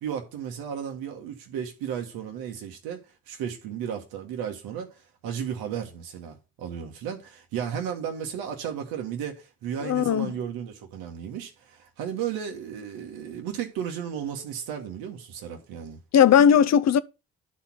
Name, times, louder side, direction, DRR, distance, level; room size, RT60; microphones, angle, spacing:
voice 1, 0.0-16.0, right 8 dB, 75° right, 1.5 m, -34 dB
voice 2, 9.8-10.3 16.1-17.0, left 8 dB, 45° left, 0.7 m, -18 dB
11.0 x 4.3 x 5.9 m
hypercardioid pair, 45°, 36 cm